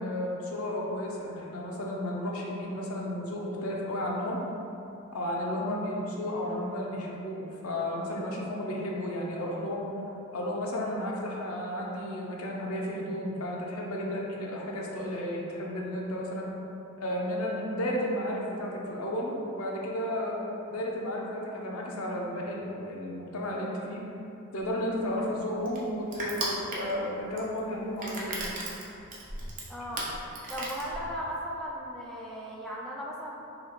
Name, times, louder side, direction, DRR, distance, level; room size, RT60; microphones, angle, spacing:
voice 1, 0.0-4.4 5.1-9.9 10.3-16.5 17.0-20.4 20.7-24.0 24.5-28.6, left 1 dB, 70° left, -2 dB, 0.6 m, -33 dB
Crushing, 24.6-31.4, right 2 dB, 40° right, 0.7 m, -37 dB
voice 2, 29.7-30.0 30.5-33.3, equal, 5° left, -5 dB, 0.4 m, -36 dB
3.0 x 2.9 x 4.1 m, 2.8 s
head